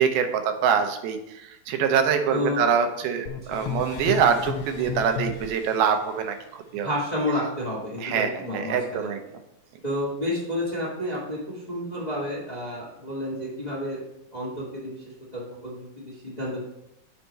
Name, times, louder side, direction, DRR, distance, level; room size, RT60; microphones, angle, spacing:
voice 1, 0.0-6.9 8.0-9.2, right 7 dB, 90° right, 6 dB, 2.7 m, -24 dB
voice 2, 2.3-2.6 3.4-3.7 6.8-9.2 9.8-11.4 11.7-14.0 14.3-14.9 15.3-16.6, left 1 dB, 55° left, -6 dB, 0.4 m, -30 dB
sound 1, 3.3-6.0, left 7 dB, 90° left, 2.5 m, -33 dB
7.0 x 4.4 x 5.2 m, 0.84 s
omnidirectional pair, 4.3 m